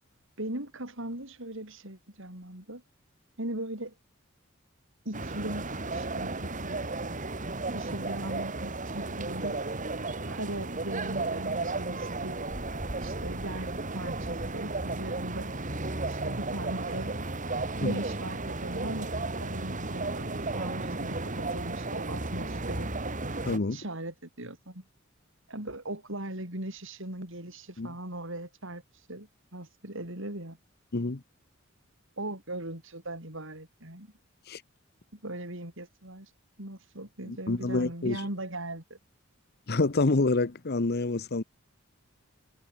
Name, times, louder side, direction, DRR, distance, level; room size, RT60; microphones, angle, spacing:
voice 1, 0.4-2.8 3.4-3.9 5.1-6.9 7.7-9.6 10.3-12.4 13.0-15.5 16.0-17.1 17.8-22.9 23.7-24.8 25.5-30.6 32.2-34.1 35.1-36.3 36.6-39.0, right 1 dB, 65° right, 7.0 m, -39 dB
sound 1, 5.1-23.6, right 2 dB, 40° right, 3.6 m, -34 dB
voice 2, 23.4-23.8 27.8-27.9 30.9-31.2 34.5-34.6 37.3-38.2 39.7-41.4, left 3 dB, 50° left, 0.9 m, -27 dB
head